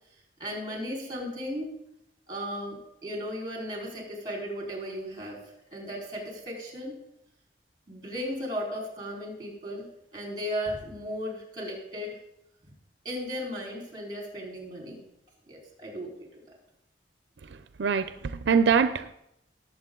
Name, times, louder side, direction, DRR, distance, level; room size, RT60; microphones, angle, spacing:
voice 1, 0.4-1.7 2.3-5.4 5.7-6.9 7.9-9.9 10.1-12.2 12.6-12.7 13.0-15.0 15.5-16.4, equal, 25° right, 4.3 m, -36 dB
voice 2, 17.8-19.1, right 6 dB, 85° right, 0.5 m, -23 dB
19.0 x 7.8 x 3.8 m
head